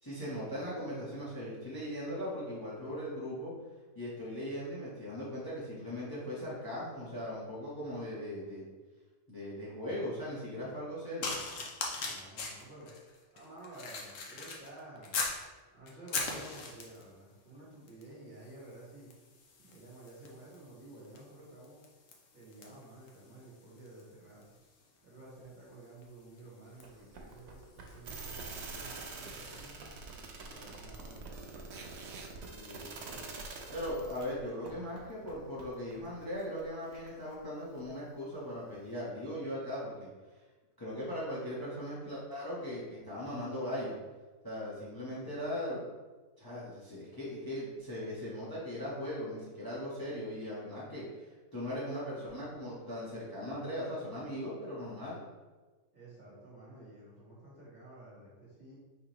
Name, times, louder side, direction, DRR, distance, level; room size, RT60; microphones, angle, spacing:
voice 1, 0.0-3.5 3.9-8.7 9.3-11.3 32.5-33.2 33.7-40.1 40.8-44.0 44.4-45.8 46.4-51.3 51.5-55.2, equal, 15° left, -9 dB, 1.1 m, -39 dB
sound 1, 11.2-15.4 15.9-17.1 17.9-18.1 18.4-28.1 28.8-29.0, left 3 dB, 75° left, 1.1 m, -42 dB
voice 2, 11.9-12.9 13.3-15.2 15.7-19.1 19.6-21.8 22.3-24.6 25.0-29.9 30.4-32.0 55.9-58.7, right 1 dB, 35° right, -7 dB, 1.4 m, -52 dB
Run, 26.6-38.9, right 2 dB, 85° right, 1.2 m, -54 dB
sound 2, 28.0-34.3, right 4 dB, 65° right, 0.9 m, -45 dB
4.7 x 3.6 x 3.0 m, 1.3 s
omnidirectional pair, 1.4 m